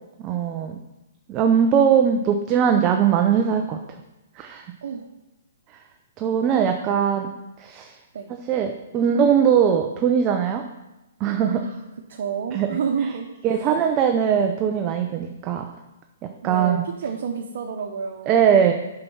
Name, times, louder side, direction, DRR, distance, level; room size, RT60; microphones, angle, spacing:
voice 1, 0.2-0.8 1.3-3.8 4.4-4.7 6.2-7.3 7.6-7.9 8.3-10.6 11.2-11.7 12.5-12.8 13.4-15.7 16.2-16.9 18.3-18.7, right 8 dB, 25° right, 5 dB, 0.7 m, -20 dB
voice 2, 12.1-13.3 13.6-13.7 16.4-18.4, right 6 dB, 60° right, 1 dB, 1.1 m, -29 dB
7.8 x 5.8 x 5.6 m, 0.98 s
hypercardioid pair, 150°, 0 cm